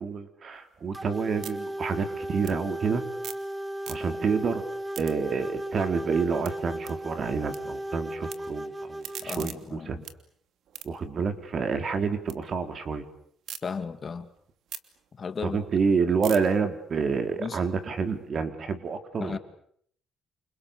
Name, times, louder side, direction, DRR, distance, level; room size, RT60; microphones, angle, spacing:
voice 1, 0.0-3.0 3.9-4.6 5.0-10.0 10.8-13.0 15.4-19.4, right 5 dB, 50° right, 8 dB, 4.3 m, -28 dB
sound 1, 0.5-3.5 3.8-4.4 4.7-7.6 7.9-8.4 8.8-12.4 12.8-13.6 14.1-18.2, right 9 dB, 75° right, 2.8 m, -45 dB
sound 2, 0.9-9.3, right 1 dB, 15° right, 1.6 m, -36 dB
voice 2, 9.2-10.0 13.6-14.3 15.1-15.6 17.4-17.6 19.2-19.4, left 5 dB, 40° left, 9 dB, 2.6 m, -35 dB
29.0 x 29.0 x 6.9 m, 0.65 s
cardioid pair, 90°, 0 cm